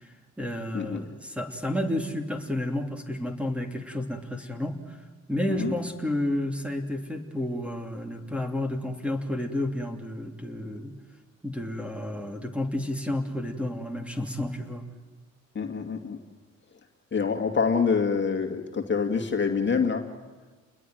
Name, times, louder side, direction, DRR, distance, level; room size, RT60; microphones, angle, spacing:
voice 1, 0.0-5.0 5.3-10.9 11.4-14.9, left 1 dB, 5° right, 4 dB, 3.0 m, -31 dB
voice 2, 15.5-16.2 17.1-20.1, left 5 dB, 40° left, 4 dB, 2.3 m, -26 dB
29.5 x 21.0 x 9.5 m, 1.3 s
cardioid pair, 90°, 30 cm